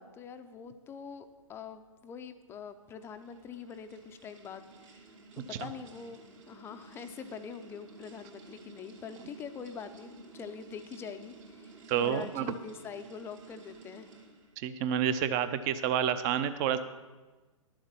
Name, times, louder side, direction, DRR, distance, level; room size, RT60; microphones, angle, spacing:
voice 1, 0.0-5.1 5.4-6.2 6.5-14.1, left 6 dB, 15° left, 9 dB, 0.5 m, -44 dB
sound 1, 2.5-14.6, right 3 dB, 65° right, 2.7 m, -53 dB
voice 2, 11.9-12.6 14.6-16.8, right 9 dB, 30° right, 12 dB, 0.6 m, -29 dB
11.5 x 7.3 x 5.9 m, 1.2 s
hypercardioid pair, 130°, 18 cm